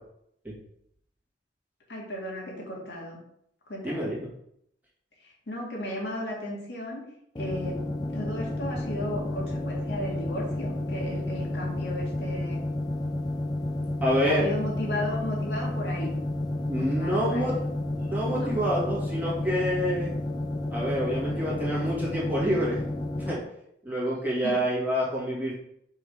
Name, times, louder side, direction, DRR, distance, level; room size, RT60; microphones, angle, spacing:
voice 1, 1.9-3.2 3.7-4.1 5.2-7.0 7.4-7.8 8.1-12.6 14.3-16.1 16.7-17.6 18.3-18.5 24.4-24.6, left 1 dB, 75° left, -3 dB, 2.0 m, -35 dB
voice 2, 3.8-4.3 14.0-14.5 16.7-17.6 17.9-20.1 20.7-22.8 23.2-23.4 23.8-25.5, equal, 10° right, -7 dB, 2.1 m, -27 dB
sound 1, 7.4-23.4, left 1 dB, 25° left, 0.5 m, -31 dB
5.7 x 3.9 x 5.0 m, 0.73 s
head